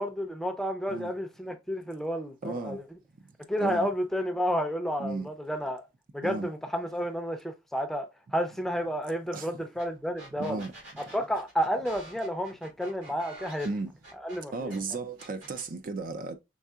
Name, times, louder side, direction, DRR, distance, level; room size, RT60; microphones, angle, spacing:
voice 1, 0.0-2.8 3.5-5.8 6.1-8.1 8.3-10.6 11.0-13.7 14.2-14.7, equal, ahead, 0.5 m, -31 dB
voice 2, 2.4-2.8 3.6-3.9 5.0-5.3 6.2-6.5 9.3-9.5 10.4-10.7 13.6-13.9 14.5-16.3, right 3 dB, 45° right, 0.4 m, -34 dB
sound 1, 9.8-9.9 10.2-14.8 15.2-15.7, right 1 dB, 80° right, 3.0 m, -48 dB
5.4 x 3.6 x 2.3 m
head